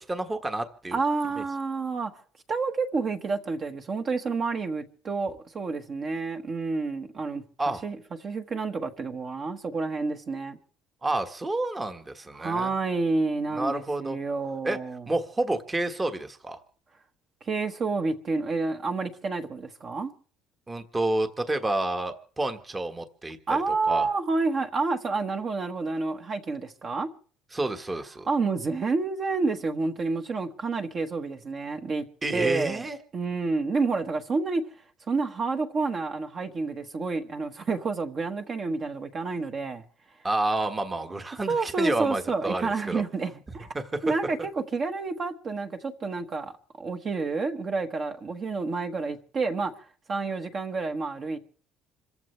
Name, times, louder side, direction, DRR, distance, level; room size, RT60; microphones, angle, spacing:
voice 1, 0.1-1.0 7.6-7.8 11.0-12.7 13.5-14.2 14.6-14.8 15.1-16.6 20.7-23.6 23.9-24.1 27.5-28.3 32.2-33.0 40.2-43.0 43.7-43.8, right 2 dB, 15° right, 1.4 m, -29 dB
voice 2, 0.9-2.1 2.5-7.4 7.8-8.0 8.2-10.6 12.3-15.0 17.4-20.1 23.5-27.1 28.3-32.0 32.3-32.8 33.1-34.6 35.1-39.8 41.5-43.7 44.0-49.7 50.1-51.4, right 4 dB, 30° right, 1.4 m, -29 dB
27.0 x 14.5 x 3.3 m
cardioid pair, 165°, 0 cm